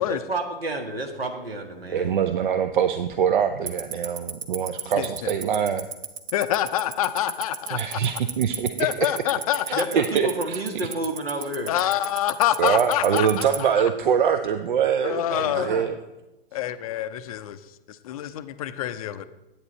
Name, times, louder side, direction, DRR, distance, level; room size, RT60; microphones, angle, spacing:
voice 1, 0.1-2.1 9.7-11.7 15.3-15.8, right 2 dB, 80° right, 4 dB, 1.7 m, -30 dB
voice 2, 1.9-5.9 7.7-9.1 9.7-10.6 12.6-15.9, right 8 dB, 55° right, 9 dB, 0.6 m, -24 dB
Tick-tock, 3.7-13.6, right 8 dB, 30° right, 0.9 m, -29 dB
voice 3, 5.0-5.3 6.3-8.0 8.8-9.8 11.7-13.7 15.0-15.7 16.5-17.6 17.9-19.2, left 12 dB, 40° left, 12 dB, 0.5 m, -26 dB
10.5 x 8.6 x 4.1 m, 1.0 s
figure-of-eight pair, 110°, 30 cm